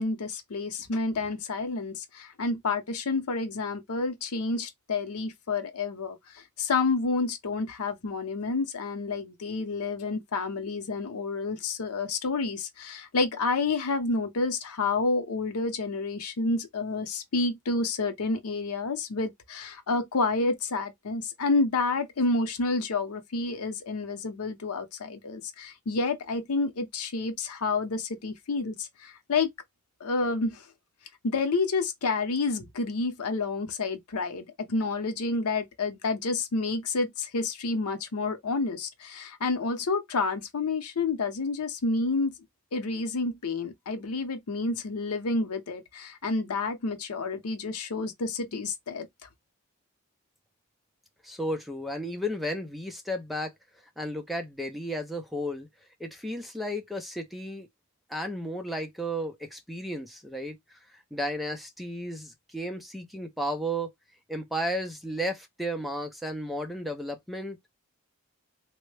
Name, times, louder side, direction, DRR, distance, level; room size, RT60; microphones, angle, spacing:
voice 1, 0.0-29.5 30.0-30.6 31.2-42.3 42.7-49.1, left 3 dB, 80° left, 0.7 m, -29 dB
voice 2, 51.2-53.5 54.0-55.7 56.0-57.7 58.1-60.6 61.1-63.9 64.3-67.6, equal, ahead, 0.5 m, -33 dB
3.4 x 2.1 x 3.2 m
head